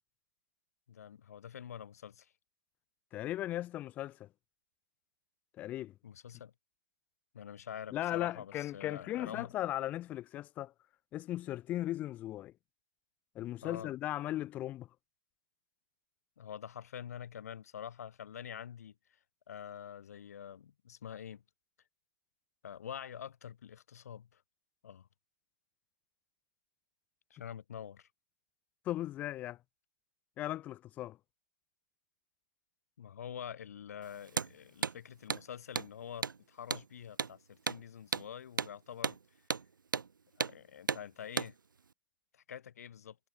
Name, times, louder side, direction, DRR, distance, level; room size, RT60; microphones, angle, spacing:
voice 1, 0.9-2.3 6.0-6.5 7.3-9.5 13.6-13.9 16.4-19.2 19.5-21.4 22.6-24.4 24.8-25.1 27.3-28.1 33.0-39.2 40.4-41.6 42.3-43.2, left 9 dB, 45° left, 3.5 m, -46 dB
voice 2, 3.1-4.3 5.6-5.9 7.9-10.7 11.1-12.5 13.3-14.9 28.8-29.6 30.4-31.2, left 14 dB, 15° left, 1.2 m, -37 dB
Hammer, 34.3-34.5 34.8-35.0 35.3-35.4 35.8-35.9 36.2-36.4 36.7-36.9 37.2-37.3 37.7-37.8 38.1-38.3 38.6-38.7 39.0-39.2 39.5-39.7 39.9-40.1 40.4-40.6 40.9-41.0 41.4-41.5, right 5 dB, 60° right, 2.2 m, -34 dB
figure-of-eight pair, 150°, 12 cm